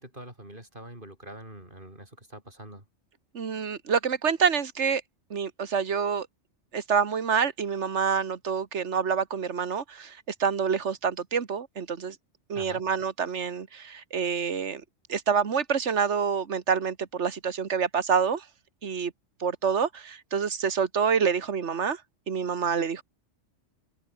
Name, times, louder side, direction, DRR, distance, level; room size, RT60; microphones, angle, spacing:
voice 1, 0.0-2.9 12.5-12.9, right 1 dB, 45° right, 7.3 m, -44 dB
voice 2, 3.3-5.0 5.3-6.3 6.7-12.2 12.5-14.8 15.1-18.4 18.8-19.1 19.4-22.0 22.3-23.0, right 6 dB, 70° right, 1.8 m, -27 dB
open air
omnidirectional pair, 1.2 m